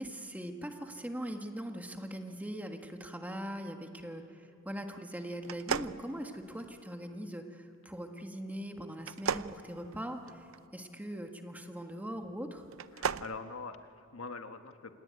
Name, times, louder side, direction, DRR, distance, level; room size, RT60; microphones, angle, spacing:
voice 1, 0.0-10.5 10.7-12.7, equal, 10° right, 4 dB, 1.7 m, -41 dB
sound 1, 5.4-6.8 9.0-10.6 12.6-13.3, right 6 dB, 80° right, 0.6 m, -36 dB
voice 2, 12.9-14.9, left 4 dB, 85° left, 7 dB, 1.4 m, -43 dB
28.0 x 19.0 x 9.5 m, 2.5 s
head